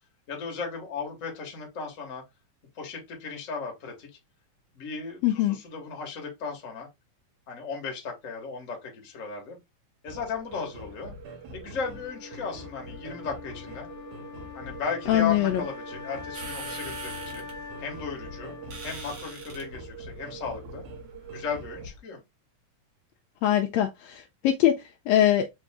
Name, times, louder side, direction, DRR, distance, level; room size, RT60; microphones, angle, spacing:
voice 1, 0.3-2.2 2.7-4.1 4.7-6.9 7.5-9.6 10.0-11.1 11.5-13.9 14.5-17.5 17.8-18.5 18.8-20.8 21.3-22.2, left 5 dB, 40° left, 1.1 m, -36 dB
voice 2, 5.2-5.6 15.1-15.6 23.4-25.5, left 11 dB, 80° left, 1.6 m, -23 dB
sound 1, 10.1-21.9, right 2 dB, 85° right, 2.7 m, -44 dB
Wind instrument woodwind instrument, 11.7-19.7, left 5 dB, 60° left, 1.3 m, -43 dB
sound 2, 16.3-22.0, right 3 dB, 60° right, 2.2 m, -45 dB
5.3 x 2.7 x 3.5 m
omnidirectional pair, 3.4 m